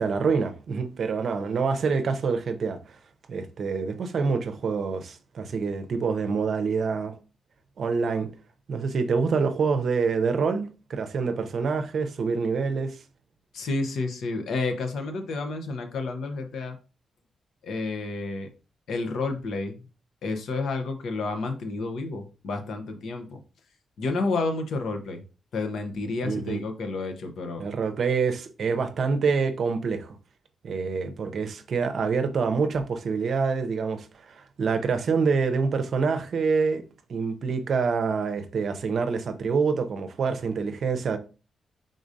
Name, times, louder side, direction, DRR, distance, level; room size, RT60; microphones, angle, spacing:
voice 1, 0.0-3.0 3.3-7.2 7.8-8.3 8.7-13.0 26.2-26.6 27.6-30.2 30.6-36.8 37.1-41.2, right 5 dB, 60° right, 0.6 m, -26 dB
voice 2, 13.5-16.8 17.6-18.5 18.9-19.8 20.2-23.4 24.0-25.2 25.5-27.7, left 3 dB, 80° left, 0.8 m, -30 dB
4.9 x 3.8 x 2.6 m
cardioid pair, 110°, 0 cm